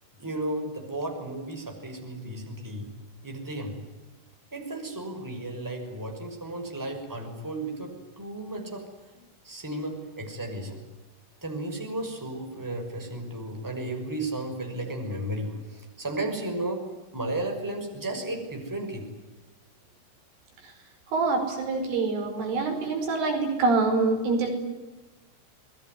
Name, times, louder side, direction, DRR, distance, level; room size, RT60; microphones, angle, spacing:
voice 1, 0.2-2.9 3.2-3.8 4.5-8.9 9.1-10.8 11.4-16.9 17.1-19.1, right 1 dB, 5° right, 3 dB, 5.6 m, -34 dB
voice 2, 21.1-24.5, right 3 dB, 75° right, 4 dB, 7.5 m, -25 dB
29.0 x 21.0 x 9.6 m, 1.1 s
omnidirectional pair, 5.8 m